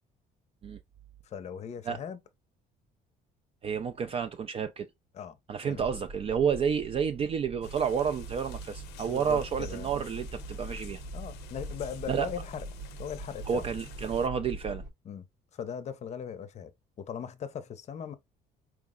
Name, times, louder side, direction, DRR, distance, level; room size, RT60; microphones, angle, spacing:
voice 1, 1.2-2.2 5.1-5.4 5.7-5.8 9.1-9.9 11.1-12.6 13.0-13.6 15.0-15.3 15.5-16.7 17.0-18.1, left 8 dB, 40° left, 0.6 m, -39 dB
voice 2, 3.6-4.9 5.5-11.0 12.1-12.3 13.5-14.8, right 7 dB, 35° right, 0.4 m, -30 dB
sound 1, 5.7-14.9, right 2 dB, 65° right, 0.8 m, -43 dB
sound 2, 7.6-14.3, left 10 dB, 85° left, 0.6 m, -50 dB
4.7 x 2.0 x 3.6 m
cardioid pair, 110°, 17 cm